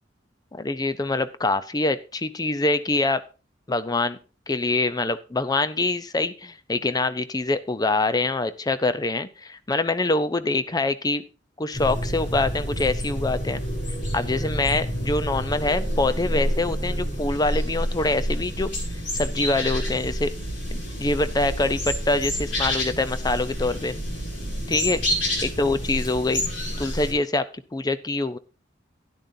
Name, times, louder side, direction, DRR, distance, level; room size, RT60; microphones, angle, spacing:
voice 1, 0.5-3.2 3.7-4.2 4.5-11.2 11.6-13.6 14.1-18.7 19.1-20.3 20.7-23.9 24.7-25.0 25.4-26.4 26.8-28.4, left 2 dB, 20° left, 13 dB, 0.6 m, -25 dB
sound 1, 11.7-27.1, equal, 85° left, 5.6 m, -28 dB
12.5 x 10.0 x 2.7 m, 0.33 s
head